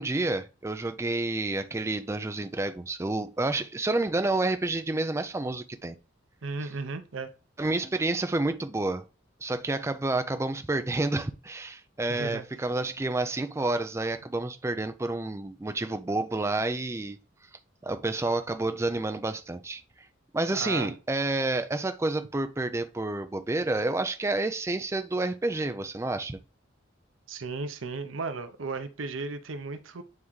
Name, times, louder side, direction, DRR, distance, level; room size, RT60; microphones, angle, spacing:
voice 1, 0.0-5.9 7.6-9.0 9.4-17.2 17.8-19.8 20.3-26.4, right 2 dB, 15° right, 0.4 m, -29 dB
voice 2, 6.4-7.3 12.1-12.4 20.5-20.9 27.3-30.0, right 3 dB, 85° right, 0.7 m, -35 dB
9.4 x 3.6 x 3.1 m
head